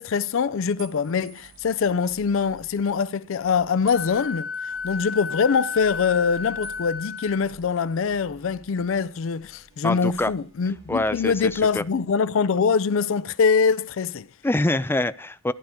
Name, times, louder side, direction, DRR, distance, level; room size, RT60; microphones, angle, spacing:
voice 1, 0.0-14.3, left 5 dB, 70° left, 0.4 m, -23 dB
sound 1, 0.8-1.8 3.9-4.9 6.6-6.9 7.2-8.1, right 5 dB, 90° right, 6.0 m, -48 dB
sound 2, 1.4-12.0, equal, 65° right, 4.9 m, -53 dB
Wind instrument woodwind instrument, 3.9-7.4, left 5 dB, 50° left, 1.1 m, -32 dB
voice 2, 9.8-10.3 10.9-11.8 14.4-15.5, left 2 dB, 10° left, 0.4 m, -25 dB
14.0 x 10.5 x 3.7 m
head